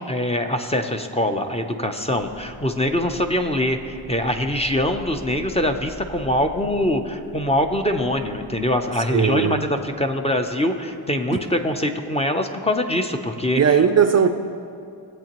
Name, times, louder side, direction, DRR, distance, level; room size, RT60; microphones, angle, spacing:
voice 1, 0.0-13.6, left 1 dB, 15° left, 5 dB, 0.6 m, -23 dB
sound 1, 2.1-10.8, left 1 dB, 70° left, 1.7 m, -44 dB
voice 2, 9.1-9.6 13.6-14.3, right 7 dB, 40° right, 7 dB, 0.4 m, -17 dB
18.0 x 8.1 x 3.0 m, 2.4 s
wide cardioid pair, 110°, 43 cm